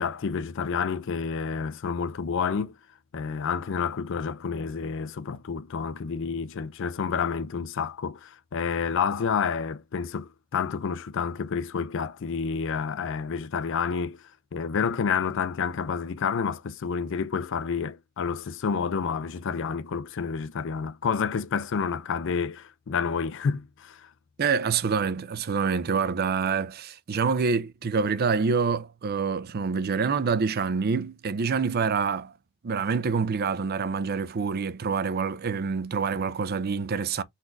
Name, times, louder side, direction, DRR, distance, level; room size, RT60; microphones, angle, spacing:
voice 1, 0.0-2.7 3.1-14.2 14.5-24.1, left 6 dB, 65° left, 0.4 m, -29 dB
voice 2, 24.4-32.3 32.6-37.2, right 5 dB, 50° right, 0.5 m, -26 dB
4.0 x 2.6 x 4.5 m
head